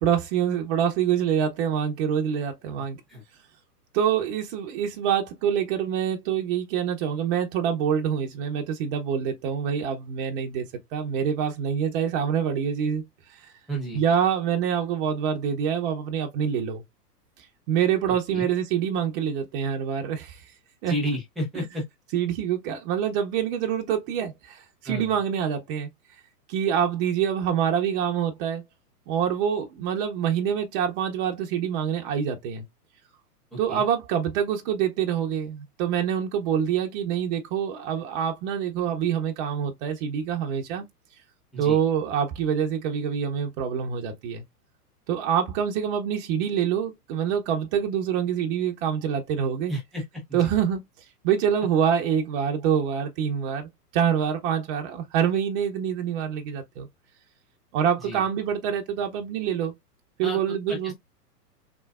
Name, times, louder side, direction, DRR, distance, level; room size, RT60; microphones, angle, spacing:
voice 1, 0.0-3.0 3.9-13.0 13.9-16.8 17.7-20.4 20.8-20.9 21.5-21.6 22.1-25.9 26.5-28.6 29.1-32.6 33.6-40.9 41.6-44.4 45.1-49.7 50.3-50.8 51.2-56.9 57.7-59.7 60.2-60.9, right 8 dB, 35° right, 0.7 m, -26 dB
voice 2, 2.8-3.2 13.7-14.0 18.1-18.5 20.9-21.8 24.8-25.1 33.7-33.8 41.5-41.8 49.7-50.0 50.3-50.5 58.0-58.2 60.2-60.4 60.7-60.9, equal, ahead, 0.3 m, -32 dB
3.7 x 3.2 x 2.3 m
hypercardioid pair, 125°, 48 cm